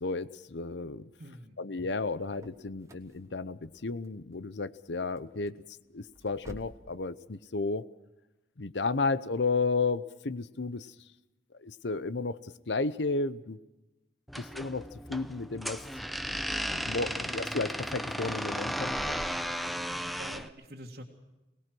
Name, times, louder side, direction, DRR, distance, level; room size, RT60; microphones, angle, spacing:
voice 1, 0.0-1.1 1.6-5.5 5.9-7.9 8.6-10.9 11.6-13.6 14.4-15.8 16.7-19.2, left 3 dB, 85° left, 15 dB, 0.8 m, -33 dB
voice 2, 1.2-1.6 19.5-19.7 20.2-21.0, equal, 60° right, -2 dB, 2.0 m, -47 dB
sound 1, 2.2-6.9, equal, 15° right, 1.4 m, -53 dB
sound 2, 14.3-20.5, equal, ahead, 0.7 m, -35 dB
22.5 x 19.5 x 6.2 m, 1.1 s
head